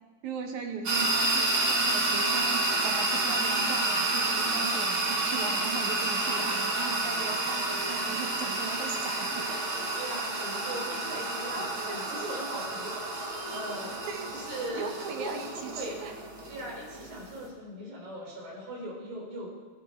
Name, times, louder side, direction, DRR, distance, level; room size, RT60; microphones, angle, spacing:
voice 1, 0.2-9.6 11.5-12.1 14.0-14.3 14.7-16.1, right 5 dB, 65° right, 4 dB, 2.2 m, -38 dB
sound 1, 0.9-17.5, right 2 dB, 40° right, 2.2 m, -30 dB
voice 2, 9.9-14.9 15.2-16.0 16.5-19.5, right 1 dB, 80° right, -2 dB, 6.4 m, -40 dB
24.5 x 10.5 x 4.5 m, 1.4 s
omnidirectional pair, 4.6 m